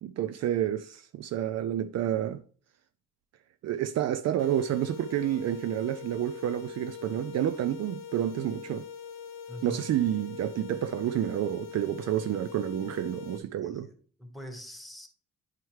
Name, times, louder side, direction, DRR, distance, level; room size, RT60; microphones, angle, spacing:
voice 1, 0.0-2.4 3.6-8.9 9.6-13.9, right 11 dB, 60° right, 0.4 m, -29 dB
sound 1, 4.4-13.4, left 7 dB, 60° left, 0.9 m, -43 dB
voice 2, 9.5-9.8 13.6-15.1, equal, ahead, 1.4 m, -44 dB
9.5 x 4.5 x 3.2 m
cardioid pair, 90°, 30 cm